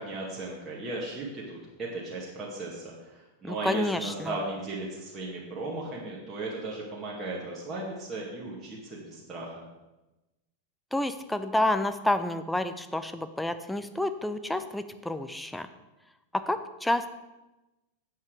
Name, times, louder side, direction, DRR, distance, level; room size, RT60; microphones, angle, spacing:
voice 1, 0.0-9.5, right 2 dB, 25° right, -5 dB, 2.0 m, -36 dB
voice 2, 3.4-4.3 10.9-15.7 16.3-17.1, left 1 dB, 5° left, 10 dB, 0.6 m, -29 dB
8.1 x 8.1 x 5.0 m, 1.0 s
figure-of-eight pair, 90°, 0 cm